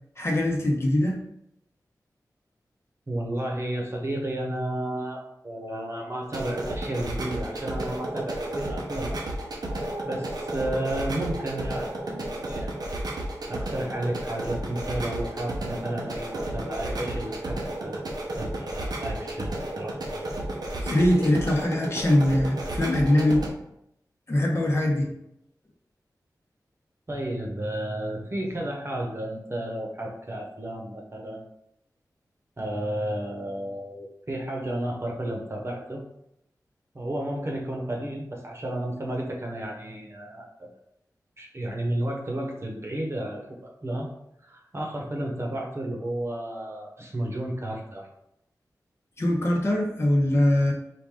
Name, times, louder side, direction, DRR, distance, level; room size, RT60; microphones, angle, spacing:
voice 1, 0.2-1.2 20.8-23.4 24.3-25.1 49.2-50.7, left 1 dB, 40° left, -1 dB, 1.1 m, -22 dB
voice 2, 3.1-9.2 10.0-12.7 13.5-18.0 18.4-20.2 27.1-31.4 32.6-36.0 36.9-40.7 41.4-44.1 44.4-48.1, right 1 dB, 40° right, 0 dB, 1.1 m, -32 dB
sound 1, 6.2-23.5, right 1 dB, 70° right, 0.8 m, -32 dB
4.7 x 2.5 x 3.7 m, 0.78 s
wide cardioid pair, 70°, 7 cm